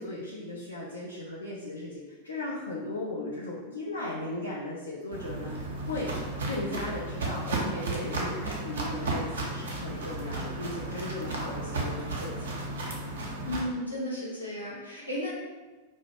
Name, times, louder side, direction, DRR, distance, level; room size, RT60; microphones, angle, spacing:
voice 1, 0.0-6.1 6.5-12.6, left 2 dB, 70° left, -6 dB, 0.4 m, -37 dB
Walk footsteps, 5.1-13.6, right 2 dB, 65° right, 0.5 m, -34 dB
voice 2, 13.4-15.3, left 1 dB, 90° left, -7 dB, 0.7 m, -34 dB
2.1 x 2.0 x 2.9 m, 1.2 s
figure-of-eight pair, 90°, 0 cm